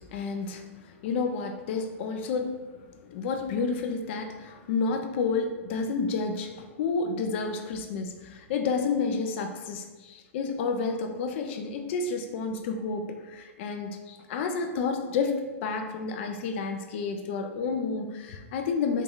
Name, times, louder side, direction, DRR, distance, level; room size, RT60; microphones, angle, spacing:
voice 1, 0.1-0.7 1.0-2.6 3.1-19.0, left 4 dB, 55° left, 5 dB, 0.5 m, -30 dB
3.6 x 2.9 x 3.7 m, 1.3 s
hypercardioid pair, 100°, 7 cm